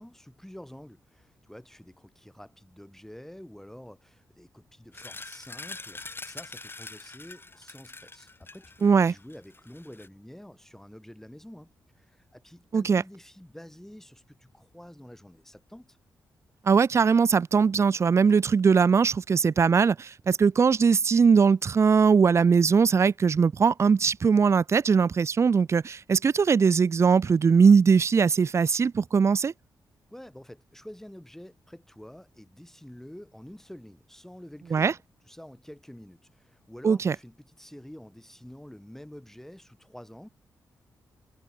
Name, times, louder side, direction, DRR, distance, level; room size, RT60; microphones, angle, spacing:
voice 1, 0.0-16.0 30.1-40.3, equal, 5° left, 6.8 m, -48 dB
sound 1, 4.9-10.1, left 3 dB, 30° left, 3.6 m, -44 dB
voice 2, 8.8-9.1 12.7-13.0 16.7-29.5 34.7-34.9 36.8-37.2, right 5 dB, 40° right, 0.4 m, -21 dB
cardioid pair, 65°, 7 cm